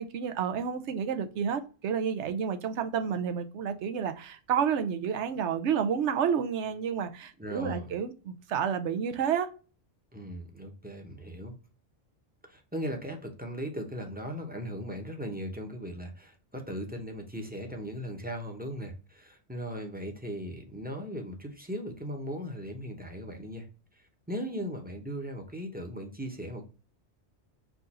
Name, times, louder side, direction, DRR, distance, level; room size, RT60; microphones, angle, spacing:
voice 1, 0.0-9.5, right 7 dB, 80° right, 0.9 m, -30 dB
voice 2, 7.4-7.9 10.1-11.5 12.5-23.7 23.9-26.7, equal, 10° right, 0.7 m, -38 dB
4.7 x 2.5 x 4.1 m
omnidirectional pair, 1.2 m